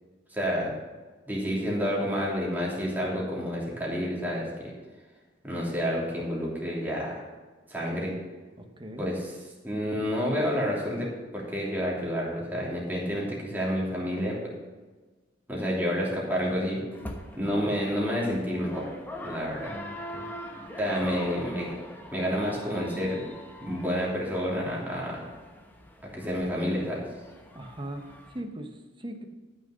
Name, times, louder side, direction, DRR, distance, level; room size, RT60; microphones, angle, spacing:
voice 1, 0.3-0.7 1.3-4.7 5.4-7.2 7.7-8.2 9.0-9.4 9.6-14.5 15.5-16.8 17.3-18.9 19.2-19.8 20.8-21.7 22.1-23.2 23.6-25.2 26.0-27.0, equal, 10° right, -4 dB, 3.0 m, -29 dB
voice 2, 8.6-9.1 19.6-20.4 21.0-21.1 27.5-29.2, right 1 dB, 25° right, 5 dB, 1.1 m, -40 dB
sound 1, 16.9-28.4, equal, 10° left, 1.2 m, -43 dB
13.0 x 6.5 x 6.4 m, 1.3 s
head